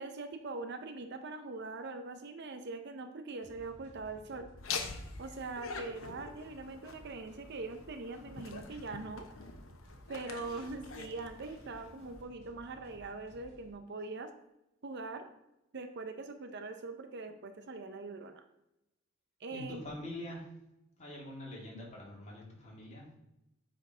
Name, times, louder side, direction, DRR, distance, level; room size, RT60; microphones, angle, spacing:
voice 1, 0.0-4.5 5.2-9.3 10.1-14.3 14.8-15.3 15.7-18.4 19.4-19.8, right 3 dB, 55° right, 8 dB, 0.6 m, -42 dB
sound 1, 3.4-13.7, equal, 35° right, 2.2 m, -57 dB
Laughter, 4.6-12.2, left 5 dB, 85° left, 0.9 m, -45 dB
voice 2, 19.5-20.4 21.0-23.1, left 1 dB, 35° left, -3 dB, 2.4 m, -44 dB
7.9 x 4.5 x 5.0 m, 0.88 s
head